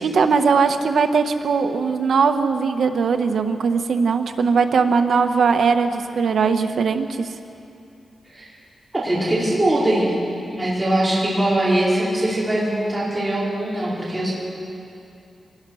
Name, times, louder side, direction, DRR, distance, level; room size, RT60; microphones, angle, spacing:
voice 1, 0.0-7.3, right 5 dB, 80° right, 7 dB, 1.2 m, -19 dB
voice 2, 8.9-10.1 10.5-14.3, right 1 dB, 15° right, -8 dB, 4.9 m, -21 dB
24.5 x 19.0 x 6.4 m, 2.7 s
wide cardioid pair, 125°, 0 cm